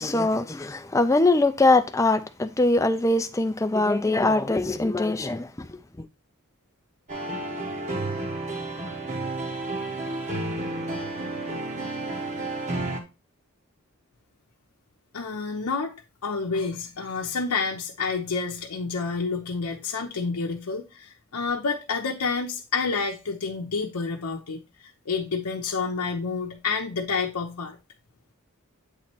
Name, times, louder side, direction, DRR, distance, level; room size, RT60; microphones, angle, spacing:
voice 1, 0.0-5.7, left 2 dB, 15° left, 0.4 m, -22 dB
sound 1, 7.1-13.0, right 2 dB, 30° right, 1.0 m, -31 dB
voice 2, 15.1-16.0 16.2-27.8, left 4 dB, 90° left, 0.8 m, -29 dB
8.3 x 3.1 x 4.3 m
head